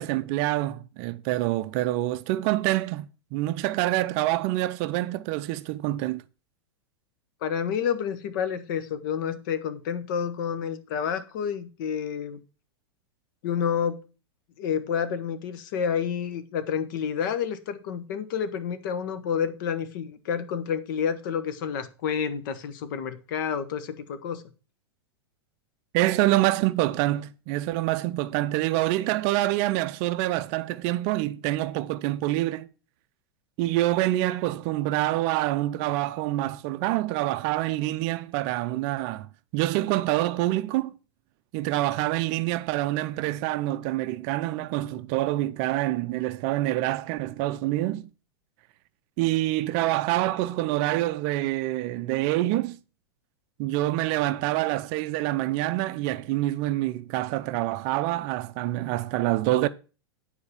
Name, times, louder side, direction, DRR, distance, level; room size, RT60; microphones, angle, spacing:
voice 1, 0.0-6.2 25.9-32.7 33.6-39.3 39.5-40.9 41.5-48.1 49.2-52.8 53.6-59.7, right 16 dB, 40° right, 0.5 m, -26 dB
voice 2, 7.4-12.4 13.4-14.0 14.6-24.4, left 7 dB, 50° left, 1.2 m, -29 dB
9.5 x 4.4 x 7.0 m
figure-of-eight pair, 95°, 13 cm